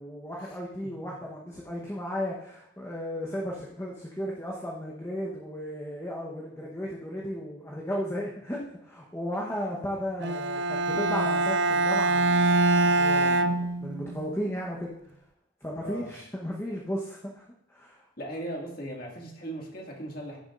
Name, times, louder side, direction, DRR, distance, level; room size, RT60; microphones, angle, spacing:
voice 1, 0.0-14.9 15.6-17.4 17.7-18.0, equal, 10° left, -3 dB, 1.0 m, -35 dB
Bowed string instrument, 10.2-14.3, right 2 dB, 60° right, 0.4 m, -24 dB
voice 2, 18.2-20.4, right 1 dB, 45° left, -1 dB, 2.0 m, -37 dB
15.5 x 7.0 x 2.5 m, 0.80 s
head